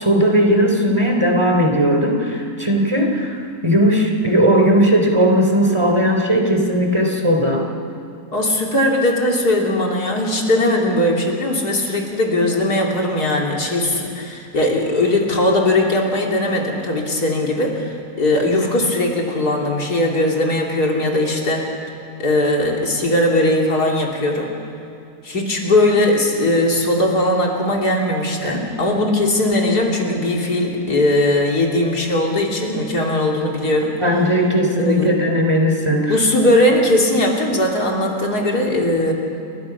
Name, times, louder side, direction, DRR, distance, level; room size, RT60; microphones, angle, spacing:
voice 1, 0.0-7.6 28.4-28.6 34.0-36.2, equal, 20° right, 2 dB, 3.3 m, -17 dB
voice 2, 8.3-21.7 22.2-24.5 25.2-33.9 34.8-35.2 36.1-39.1, left 1 dB, 85° left, 0 dB, 3.6 m, -19 dB
29.0 x 22.0 x 6.0 m, 2.7 s
omnidirectional pair, 1.6 m